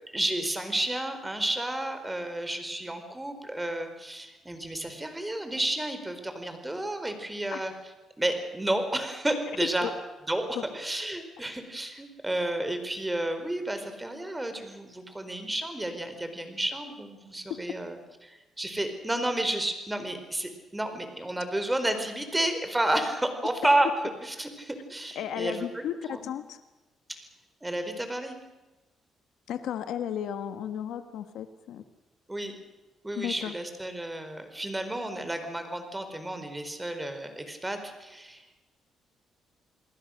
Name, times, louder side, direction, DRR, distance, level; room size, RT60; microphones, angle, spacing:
voice 1, 0.1-7.7 8.2-9.9 10.3-23.9 24.2-25.8 26.1-26.3 27.1-27.3 27.6-28.4 32.3-32.5 33.0-38.4, right 1 dB, 10° right, 8 dB, 4.6 m, -31 dB
voice 2, 25.1-26.6 29.5-31.8 33.1-33.5, left 9 dB, 80° left, 9 dB, 1.4 m, -34 dB
28.5 x 20.0 x 6.6 m, 1.1 s
cardioid pair, 90°, 0 cm